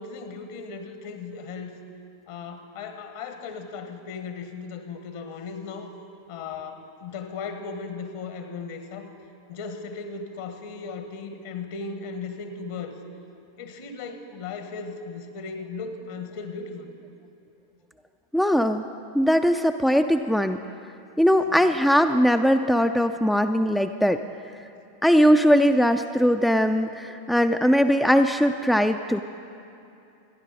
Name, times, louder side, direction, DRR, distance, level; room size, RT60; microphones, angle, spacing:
voice 1, 0.0-1.7 2.3-5.9 6.3-9.1 9.5-13.0 13.6-16.9 21.5-21.6, left 4 dB, 55° left, 7 dB, 1.5 m, -37 dB
voice 2, 18.3-18.8 19.1-20.6 21.2-24.2 25.0-29.2, equal, ahead, 8 dB, 0.4 m, -20 dB
27.0 x 10.5 x 4.1 m, 2.7 s
figure-of-eight pair, 90°, 0 cm